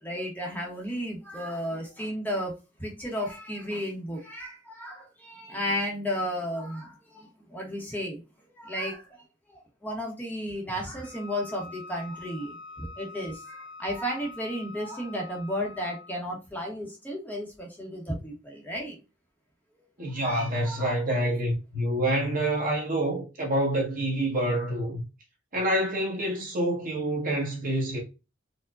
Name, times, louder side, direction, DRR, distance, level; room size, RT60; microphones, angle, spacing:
voice 1, 0.0-2.5 2.8-8.2 8.6-9.2 9.5-19.0 20.1-21.3, equal, 10° left, 0.8 m, -34 dB
Wind instrument woodwind instrument, 11.0-16.2, left 4 dB, 50° left, 1.0 m, -45 dB
voice 2, 20.0-25.0 25.5-28.0, right 1 dB, 45° right, 1.2 m, -27 dB
4.5 x 2.1 x 2.4 m
head